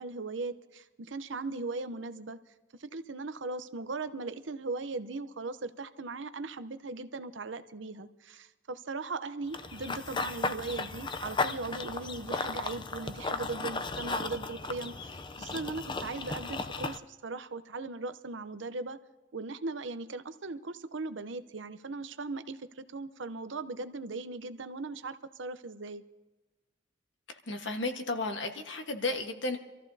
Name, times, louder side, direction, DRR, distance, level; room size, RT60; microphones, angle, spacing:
voice 1, 0.0-2.4 2.8-19.0 19.3-26.0, right 3 dB, 75° right, 12 dB, 0.7 m, -38 dB
Run / Bird vocalization bird call bird song, 9.5-17.0, left 3 dB, 25° left, 0.5 m, -35 dB
voice 2, 27.3-29.6, left 2 dB, 75° left, 5 dB, 1.5 m, -33 dB
26.5 x 14.0 x 2.8 m, 1.2 s
head